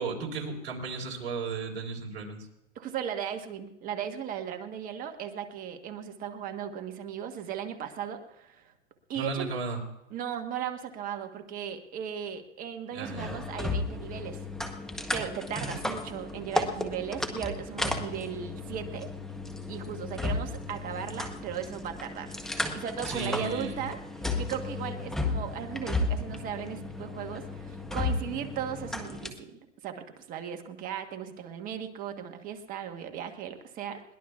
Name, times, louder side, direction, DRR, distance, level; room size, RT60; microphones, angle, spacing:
voice 1, 0.0-2.5 9.1-9.8 12.9-13.4 15.6-15.8 23.1-23.8, right 4 dB, 55° right, 1 dB, 4.0 m, -35 dB
voice 2, 2.7-8.7 9.1-9.5 10.1-14.4 15.1-19.1 19.7-22.4 22.7-24.0 24.4-34.0, right 8 dB, 25° right, 7 dB, 1.2 m, -37 dB
sound 1, 13.0-29.3, left 2 dB, ahead, 0.8 m, -34 dB
21.5 x 19.0 x 2.4 m, 0.88 s
hypercardioid pair, 135°, 37 cm